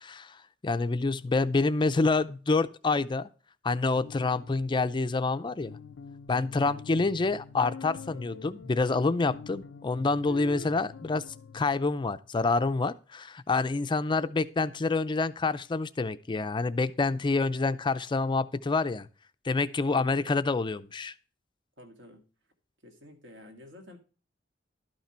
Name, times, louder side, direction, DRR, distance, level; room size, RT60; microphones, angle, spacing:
voice 1, 0.0-3.3 3.6-5.8 6.3-11.2 11.5-19.1 19.4-21.1, left 3 dB, 25° left, 12 dB, 0.4 m, -27 dB
sound 1, 4.0-11.7, left 5 dB, 85° left, 0.4 m, -45 dB
voice 2, 19.8-20.3 21.8-22.2 22.8-24.0, left 1 dB, 70° right, 4 dB, 2.1 m, -49 dB
12.0 x 5.8 x 4.3 m, 0.37 s
head